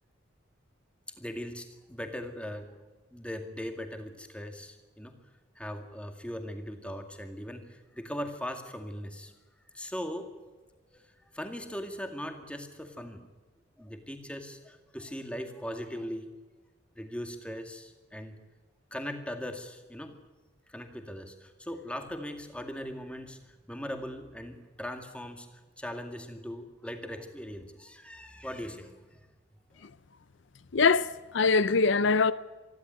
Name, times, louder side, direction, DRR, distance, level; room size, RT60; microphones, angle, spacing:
voice 1, 1.2-2.7 3.1-5.1 5.6-9.3 9.7-10.3 10.9-11.1 11.3-13.2 13.8-16.4 17.0-18.4 18.9-20.2 20.7-25.5 25.8-29.3, equal, 5° left, 2.1 m, -39 dB
voice 2, 30.7-32.3, left 4 dB, 65° left, 0.6 m, -23 dB
26.5 x 12.0 x 9.3 m
head